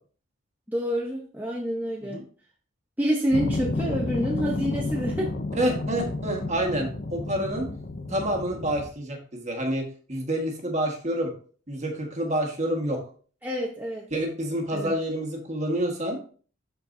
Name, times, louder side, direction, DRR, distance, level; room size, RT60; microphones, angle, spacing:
voice 1, 0.7-2.2 3.0-5.3 13.4-14.1 14.7-14.9, equal, 10° right, -3 dB, 0.9 m, -28 dB
sound 1, 3.3-8.9, left 2 dB, 45° left, 0.6 m, -31 dB
voice 2, 5.5-7.7 8.1-11.3 11.7-13.0 14.1-16.2, right 1 dB, 35° right, 2 dB, 1.5 m, -28 dB
12.0 x 4.6 x 2.7 m, 0.42 s
head